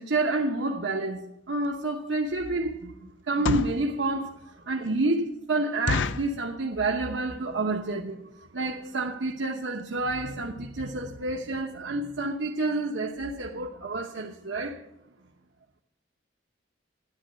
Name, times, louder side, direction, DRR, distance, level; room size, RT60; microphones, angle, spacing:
voice 1, 0.0-14.8, right 2 dB, 75° right, 1.0 m, -29 dB
sound 1, 1.6-1.8 2.3-2.5 3.2-3.9 4.4-4.5 4.8-4.9 5.3-5.4 5.9-6.4 7.0-7.3 7.5-7.6 7.8-8.1 8.7-8.8 9.0-9.1 9.5-9.6 9.8-9.9, left 4 dB, 75° left, 0.6 m, -29 dB
13.5 x 10.5 x 7.6 m
head